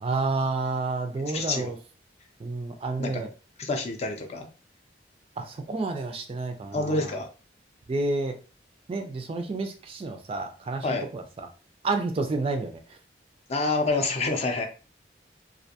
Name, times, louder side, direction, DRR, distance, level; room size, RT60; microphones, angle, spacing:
voice 1, 0.0-1.8 2.4-3.3 5.4-7.0 7.9-8.4 8.9-11.5 11.8-13.0, right 3 dB, 30° right, 5 dB, 0.3 m, -30 dB
voice 2, 1.3-1.7 3.0-3.2 3.6-4.5 6.7-7.3 10.8-11.1 13.5-14.7, left 3 dB, 35° left, 4 dB, 0.4 m, -27 dB
2.5 x 2.1 x 2.8 m, 0.35 s
head